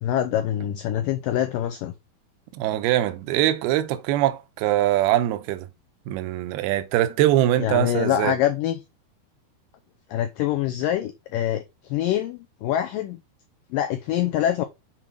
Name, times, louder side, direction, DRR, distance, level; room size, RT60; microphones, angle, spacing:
voice 1, 0.0-1.9 7.6-8.8 10.1-13.2 13.7-14.6, left 11 dB, 80° left, 1.9 m, -25 dB
voice 2, 2.5-5.7 6.1-8.3, right 13 dB, 80° right, 2.6 m, -22 dB
7.5 x 4.5 x 3.8 m
omnidirectional pair, 4.7 m